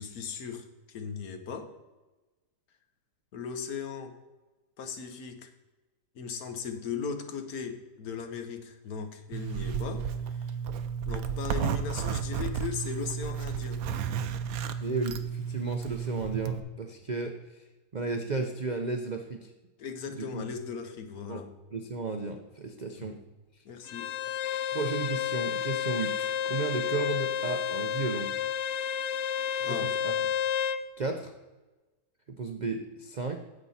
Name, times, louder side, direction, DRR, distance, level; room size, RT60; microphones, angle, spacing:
voice 1, 0.0-1.7 3.3-4.1 4.8-5.5 6.1-10.5 11.1-13.8 19.8-21.5 22.9-23.2 23.6-24.1 29.6-29.9, left 6 dB, 60° left, 7 dB, 1.4 m, -38 dB
Zipper (clothing), 9.3-16.6, right 7 dB, 70° right, 1.0 m, -32 dB
voice 2, 14.8-17.7 17.9-19.5 20.1-20.5 21.3-21.4 21.7-23.2 24.7-28.3 29.6-30.2 31.0-31.3 32.3-33.4, right 4 dB, 85° right, 5 dB, 0.4 m, -34 dB
Bowed string instrument, 23.9-30.8, left 9 dB, 80° left, 0.6 m, -31 dB
9.7 x 7.7 x 4.1 m, 1.2 s
omnidirectional pair, 1.8 m